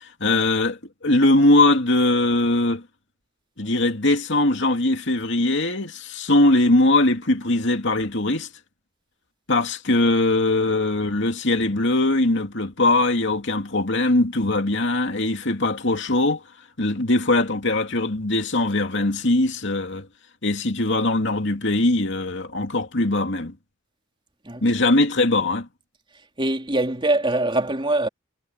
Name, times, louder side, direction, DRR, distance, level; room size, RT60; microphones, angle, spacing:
voice 1, 0.0-2.8 3.6-8.5 9.5-16.4 16.8-20.1 20.4-23.5 24.6-25.7, left 2 dB, 60° left, 2.7 m, -21 dB
voice 2, 26.4-28.1, right 2 dB, 25° right, 3.4 m, -23 dB
head